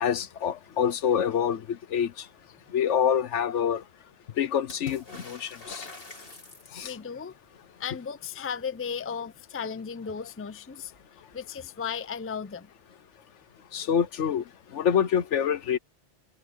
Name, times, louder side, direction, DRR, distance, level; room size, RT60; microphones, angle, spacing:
voice 1, 0.0-1.6 1.9-2.1 2.7-3.8 4.4-5.9 6.7-6.9 13.7-14.4 14.7-15.8, left 8 dB, 80° left, 1.2 m, -26 dB
Water / Splash splatter, 4.7-7.1 10.4-10.5 10.7-11.5 12.6-12.7, left 4 dB, 55° left, 3.1 m, -43 dB
voice 2, 6.8-7.4 7.8-10.9 11.3-12.7, left 6 dB, 15° left, 0.4 m, -35 dB
omnidirectional pair, 1.2 m